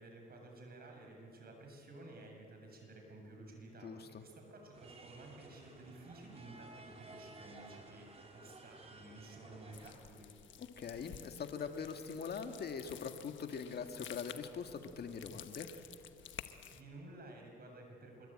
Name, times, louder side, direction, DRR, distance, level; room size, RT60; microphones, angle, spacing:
voice 1, 0.0-10.3 16.7-18.3, right 2 dB, 50° right, 2 dB, 7.4 m, -53 dB
voice 2, 3.8-4.2 10.8-15.7, left 6 dB, 55° left, 6 dB, 2.0 m, -42 dB
sound 1, 4.7-9.9, right 2 dB, 30° right, 4.4 m, -55 dB
sound 2, 9.7-16.8, left 10 dB, 75° left, 1.3 m, -52 dB
26.0 x 23.5 x 8.9 m, 2.7 s
cardioid pair, 90°, 20 cm